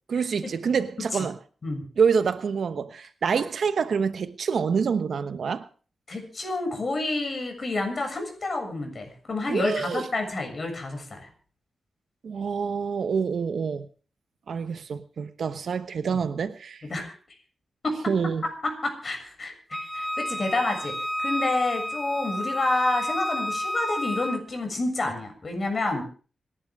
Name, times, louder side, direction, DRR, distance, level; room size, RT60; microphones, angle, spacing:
voice 1, 0.1-1.4 2.0-5.7 9.5-10.1 12.2-13.9 14.5-16.8 18.1-18.4, right 6 dB, 70° right, 1.0 m, -26 dB
voice 2, 6.1-11.3 16.9-17.1 17.8-17.9 18.6-19.5 19.9-20.9 21.2-26.0, left 2 dB, 45° left, 6.9 m, -29 dB
Wind instrument woodwind instrument, 19.7-24.4, left 1 dB, ahead, 0.9 m, -30 dB
26.5 x 11.5 x 3.6 m
cardioid pair, 90°, 0 cm